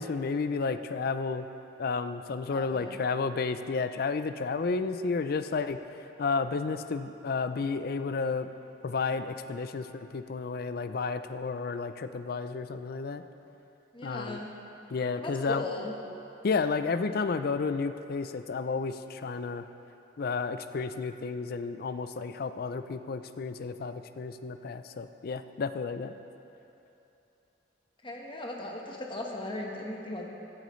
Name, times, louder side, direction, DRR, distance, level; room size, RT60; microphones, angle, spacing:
voice 1, 0.0-1.5 1.8-5.8 6.2-8.5 8.8-13.2 14.0-14.4 14.9-15.6 16.4-19.6 20.2-26.1, left 4 dB, 50° left, 10 dB, 0.4 m, -32 dB
voice 2, 2.5-3.0 13.9-14.5 15.2-15.9 28.0-30.3, left 1 dB, 25° left, 0 dB, 1.1 m, -37 dB
15.0 x 10.5 x 3.1 m, 2.9 s
head